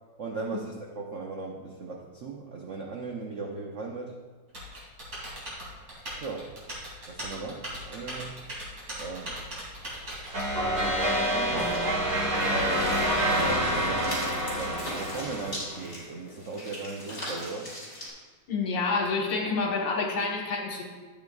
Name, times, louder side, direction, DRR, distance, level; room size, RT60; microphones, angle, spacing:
voice 1, 0.2-4.2 5.2-5.3 5.7-5.9 6.2-6.5 7.1-8.4 9.0-9.4 10.8-11.8 13.3-17.7, right 3 dB, 70° right, 0 dB, 0.7 m, -37 dB
Typing, 4.5-10.5, right 1 dB, 50° right, 3.2 m, -39 dB
sound 1, 10.3-15.8, equal, 85° right, 3.0 m, -27 dB
sound 2, 11.6-18.1, equal, 30° left, 2.9 m, -40 dB
voice 2, 18.5-20.8, left 4 dB, 70° left, -1 dB, 1.9 m, -28 dB
12.0 x 7.8 x 2.3 m, 1.4 s
omnidirectional pair, 2.1 m